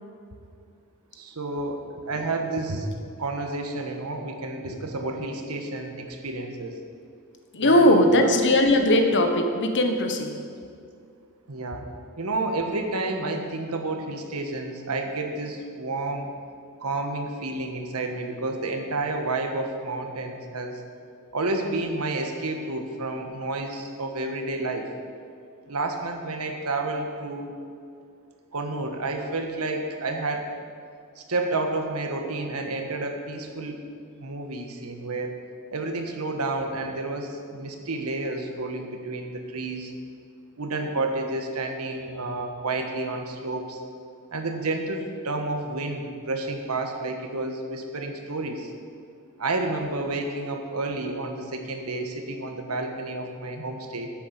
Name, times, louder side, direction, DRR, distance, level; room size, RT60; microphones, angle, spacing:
voice 1, 1.1-2.9 3.2-6.7 7.6-8.4 11.5-11.9 12.2-16.3 16.8-20.8 21.3-24.9 25.7-27.5 28.5-30.4 31.2-33.8 34.2-35.3 35.7-39.9 40.6-43.8 44.3-48.7 49.4-54.1, right 2 dB, 90° right, 4 dB, 1.4 m, -30 dB
voice 2, 7.5-10.4, left 1 dB, 55° left, 5 dB, 1.1 m, -19 dB
10.0 x 8.6 x 6.6 m, 2.3 s
head